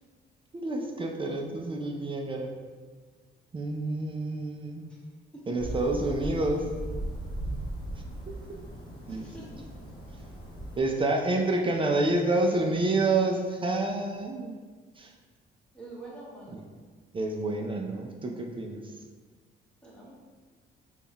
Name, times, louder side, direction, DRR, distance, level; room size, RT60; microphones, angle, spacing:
voice 1, 0.5-2.5 3.5-4.8 5.5-6.7 8.3-8.4 9.1-9.3 10.8-14.5 15.0-15.1 16.5-16.6 17.1-18.9, right 2 dB, 25° right, 1 dB, 0.4 m, -28 dB
voice 2, 5.3-5.8 9.1-9.7 15.7-16.6 19.8-20.1, right 1 dB, 5° left, -6 dB, 1.2 m, -46 dB
sound 1, 5.6-10.8, right 1 dB, 20° left, 1.0 m, -37 dB
3.5 x 2.3 x 4.0 m, 1.5 s
cardioid pair, 90°, 20 cm